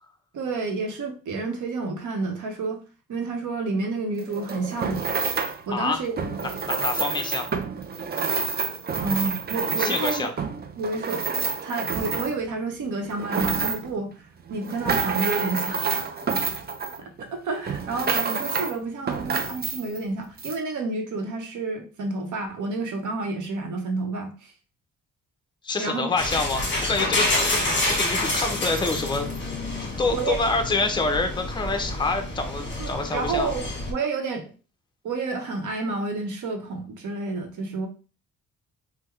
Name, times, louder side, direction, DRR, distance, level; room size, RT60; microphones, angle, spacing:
voice 1, 0.3-2.8 3.1-5.2 5.7-6.3 9.0-10.3 10.8-11.2 11.6-14.1 14.5-16.4 17.0-24.5 25.7-26.1 30.1-30.4 32.8-34.5 35.0-37.9, right 3 dB, 65° right, 3 dB, 0.9 m, -30 dB
sound 1, 4.2-5.6 6.1-12.5 13.0-14.0 14.5-17.3 17.7-18.8 19.1-20.0 20.4-20.6, right 5 dB, 30° right, 0.4 m, -28 dB
voice 2, 5.7-6.0 6.4-7.5 9.8-10.3 25.6-29.3 29.8-33.5, left 3 dB, 15° left, 5 dB, 0.6 m, -27 dB
sound 2, 26.2-33.9, left 2 dB, 35° left, 1.1 m, -28 dB
3.5 x 2.2 x 3.1 m, 0.35 s
cardioid pair, 90°, 33 cm